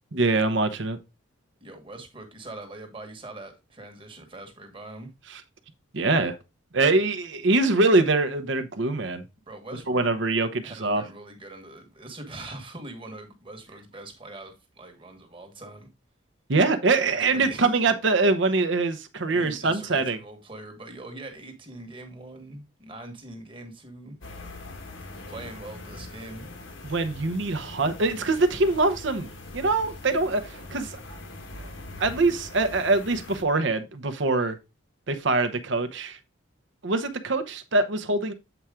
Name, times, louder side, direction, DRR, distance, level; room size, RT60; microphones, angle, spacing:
voice 1, 0.1-1.0 5.3-5.4 5.9-6.4 6.7-9.2 9.9-11.0 16.5-20.2 26.8-31.0 32.0-34.6 35.1-36.2 36.8-38.3, right 3 dB, 65° right, 0.9 m, -24 dB
voice 2, 1.6-5.1 9.5-10.1 10.6-15.9 17.1-17.7 19.3-24.2 25.3-26.5, right 2 dB, 25° right, 1.3 m, -42 dB
sound 1, 24.2-33.4, left 2 dB, 75° left, 1.2 m, -42 dB
8.0 x 4.4 x 3.6 m
head